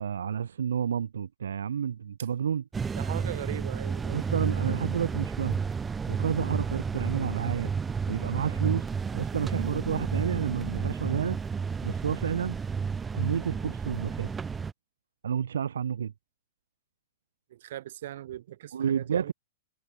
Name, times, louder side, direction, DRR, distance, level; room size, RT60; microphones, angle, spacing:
voice 1, 0.0-2.6 4.1-5.6 6.1-7.7 8.1-8.9 9.1-11.4 11.8-12.6 13.1-14.3 15.2-16.1 18.7-19.3, right 8 dB, 90° right, 1.3 m, -30 dB
sound 1, 2.7-14.7, right 5 dB, 15° right, 0.4 m, -31 dB
voice 2, 2.9-4.3 17.5-19.3, right 13 dB, 65° right, 2.8 m, -39 dB
hypercardioid pair, 135°, 0 cm